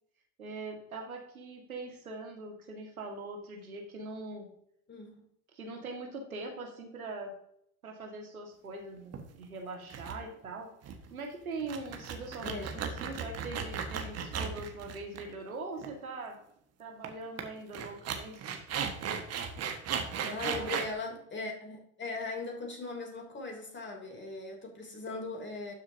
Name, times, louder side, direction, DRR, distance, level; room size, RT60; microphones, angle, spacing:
voice 1, 0.4-4.5 5.5-7.3 7.8-10.7 11.1-16.4 16.8-18.6 20.1-20.7, right 3 dB, 90° right, 2 dB, 2.0 m, -42 dB
voice 2, 4.9-5.2 12.4-12.7 20.2-25.7, left 3 dB, 25° left, 1 dB, 3.3 m, -39 dB
sound 1, 9.1-9.4 9.9-10.1 10.4-10.5 10.8-11.1 11.6-15.5 15.8-15.9 17.0-17.1 17.4-17.5 17.7-20.9, right 7 dB, 35° right, 1.6 m, -36 dB
12.5 x 7.1 x 2.8 m, 0.70 s
hypercardioid pair, 75°, 41 cm